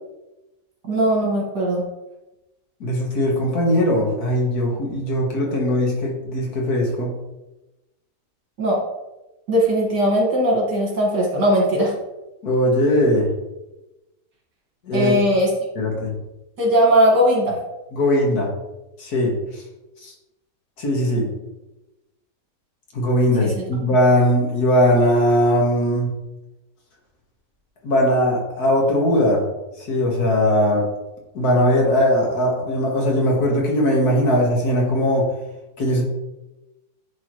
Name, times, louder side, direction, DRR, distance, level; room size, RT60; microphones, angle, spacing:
voice 1, 0.9-1.8 8.6-8.8 9.5-11.9 14.9-15.5 16.6-17.6 23.4-23.6, equal, 70° right, -2 dB, 2.4 m, -19 dB
voice 2, 2.8-7.1 12.4-13.3 14.8-15.1 15.8-16.1 17.9-18.5 19.0-19.6 20.0-20.1 20.8-21.3 22.9-26.1 27.8-29.4 29.8-30.9 31.4-35.3 35.8-36.0, equal, 60° left, -1 dB, 1.9 m, -19 dB
10.5 x 3.7 x 3.1 m, 1.0 s
omnidirectional pair, 1.9 m